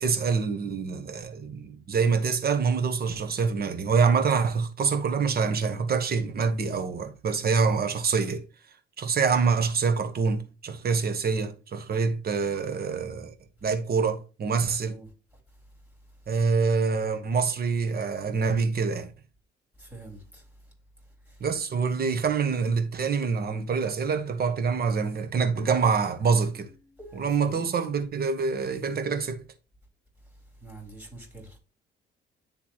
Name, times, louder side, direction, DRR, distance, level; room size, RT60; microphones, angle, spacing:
voice 1, 0.0-8.4 9.0-13.3 13.6-15.0 16.3-19.1 21.4-26.7 27.2-29.4, right 5 dB, 50° right, 1.3 m, -26 dB
voice 2, 19.8-20.4 27.0-27.7 30.6-31.6, right 2 dB, 5° right, 3.7 m, -45 dB
10.5 x 3.6 x 3.0 m
cardioid pair, 90°, 20 cm